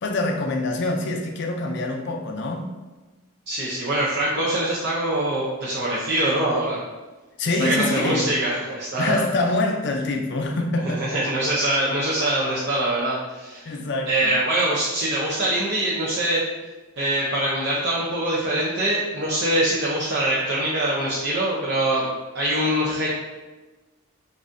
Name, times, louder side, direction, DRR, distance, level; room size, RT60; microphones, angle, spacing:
voice 1, 0.0-2.7 7.4-8.3 9.0-11.2 13.7-14.3, left 2 dB, 55° left, 0.5 m, -25 dB
voice 2, 3.5-6.8 7.5-9.2 10.8-13.8 14.1-16.4 17.0-22.1 22.3-23.1, right 1 dB, 55° right, 0.6 m, -23 dB
4.0 x 3.6 x 2.6 m
head